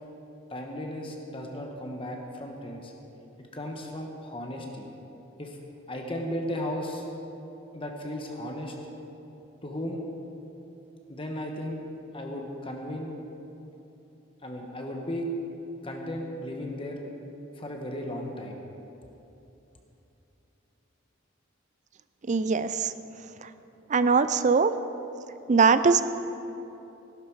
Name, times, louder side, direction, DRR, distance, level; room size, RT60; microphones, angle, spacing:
voice 1, 0.5-2.9 3.5-4.9 5.4-5.6 5.9-7.0 7.7-8.8 9.6-10.0 11.1-11.8 12.1-13.1 14.4-15.3 15.8-17.0 17.5-18.6, left 1 dB, 25° left, 1 dB, 1.1 m, -35 dB
voice 2, 22.3-22.9 23.9-24.7 25.5-26.0, right 5 dB, 35° right, 12 dB, 0.4 m, -21 dB
16.0 x 12.0 x 4.7 m, 2.9 s
head